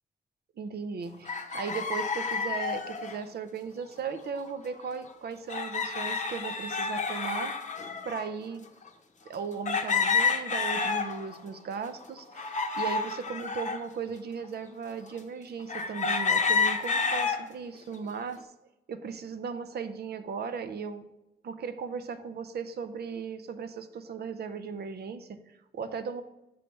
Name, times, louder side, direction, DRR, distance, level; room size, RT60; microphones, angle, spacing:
voice 1, 0.6-7.5 8.0-8.6 9.3-18.5 18.9-21.1 21.4-26.2, right 6 dB, 70° right, 10 dB, 0.5 m, -37 dB
sound 1, 1.2-3.2 4.3-4.5 4.8-4.9 5.5-8.3 8.9-9.0 9.6-11.4 11.8-13.8 14.4-14.5 15.7-17.4 17.9-18.4, left 5 dB, 45° left, 0.7 m, -29 dB
6.9 x 3.3 x 5.3 m, 0.94 s
cardioid pair, 85°, 17 cm